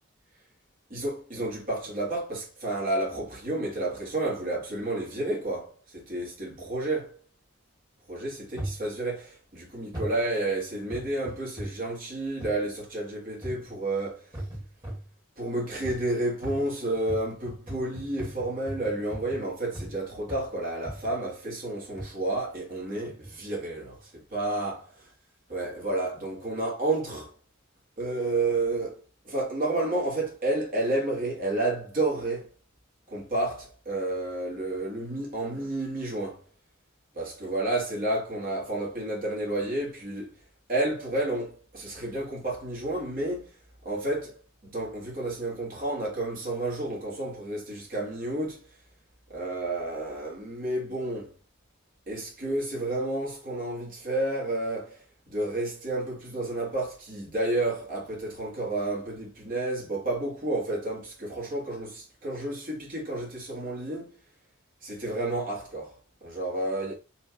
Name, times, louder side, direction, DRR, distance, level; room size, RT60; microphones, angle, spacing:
voice 1, 0.9-7.2 8.1-14.3 15.4-24.9 25.5-27.3 28.0-32.5 33.1-36.4 37.2-40.3 40.7-43.5 43.8-48.7 49.3-51.3 52.1-55.0 55.3-64.2 64.8-65.9 66.2-66.9, right 2 dB, 45° right, 1.8 m, -31 dB
sound 1, 8.6-8.9 9.9-10.2 10.9-11.9 12.4-12.6 13.4-13.8 14.3-15.1 15.8-16.1 16.4-20.0 20.3-20.5 20.9-21.2 22.0-22.2 23.0-23.4 24.0-24.1, right 1 dB, 20° right, 1.9 m, -38 dB
4.3 x 3.0 x 3.0 m
head